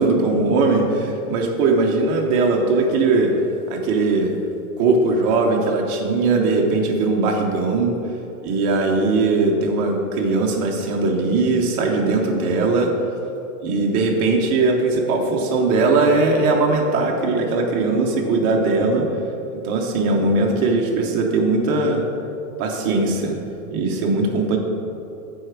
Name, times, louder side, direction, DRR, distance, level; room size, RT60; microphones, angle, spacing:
voice 1, 0.0-3.3 3.7-4.3 4.8-7.9 8.4-12.9 13.6-19.1 19.5-22.0 22.6-23.4 23.7-24.6, right 3 dB, 20° right, 1 dB, 0.4 m, -19 dB
7.7 x 4.8 x 4.7 m, 2.9 s
hypercardioid pair, 145°, 45 cm